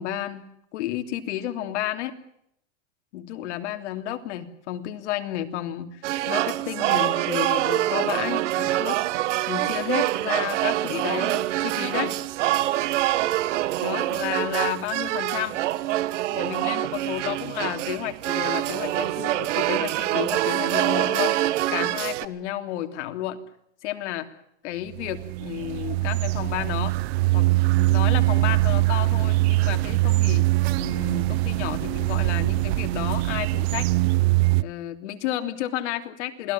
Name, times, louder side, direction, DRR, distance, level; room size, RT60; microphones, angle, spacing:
voice 1, 0.0-2.1 3.1-9.0 9.5-12.1 13.8-15.6 16.3-23.4 23.8-24.3 24.6-26.9 27.3-33.9 34.6-36.5, left 13 dB, 70° left, 7 dB, 3.2 m, -32 dB
sound 1, 6.0-22.3, right 15 dB, 75° right, 1.6 m, -25 dB
sound 2, 24.9-34.6, right 20 dB, 60° right, 0.9 m, -22 dB
28.0 x 20.5 x 7.3 m, 0.72 s
supercardioid pair, 155°, 36 cm